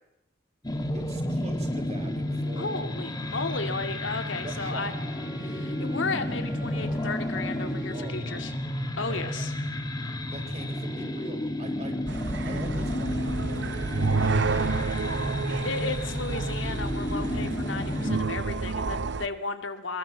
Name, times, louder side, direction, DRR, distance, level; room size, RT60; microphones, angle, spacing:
sound 1, 0.6-18.2, left 1 dB, 20° left, 2.2 m, -31 dB
voice 1, 0.9-2.8 4.4-5.0 7.9-8.5 9.1-9.5 10.3-12.0 12.4-15.3, right 1 dB, 35° right, 5 dB, 3.8 m, -43 dB
Wind instrument woodwind instrument, 1.9-9.9, right 2 dB, 20° right, 3.1 m, -51 dB
voice 2, 2.6-4.9 5.4-8.5 9.0-9.5 14.6-14.8 15.5-20.0, left 3 dB, 85° left, 6 dB, 2.5 m, -34 dB
sound 2, 12.1-19.3, right 3 dB, 65° right, 0.8 m, -30 dB
24.5 x 22.0 x 7.5 m, 0.92 s
head